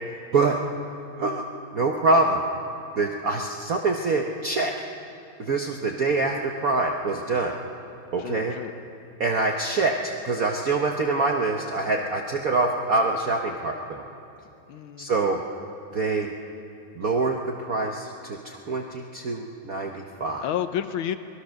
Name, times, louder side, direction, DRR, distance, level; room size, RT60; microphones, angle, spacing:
voice 1, 1.7-2.4 3.0-4.7 5.4-7.6 8.1-8.5 9.2-14.0 15.0-15.4 15.9-16.3 17.0-20.4, right 3 dB, 50° right, 2 dB, 1.2 m, -25 dB
voice 2, 8.2-8.7 14.7-15.2 20.4-21.2, left 10 dB, 75° left, 10 dB, 1.5 m, -30 dB
25.0 x 20.0 x 6.4 m, 2.6 s
omnidirectional pair, 2.4 m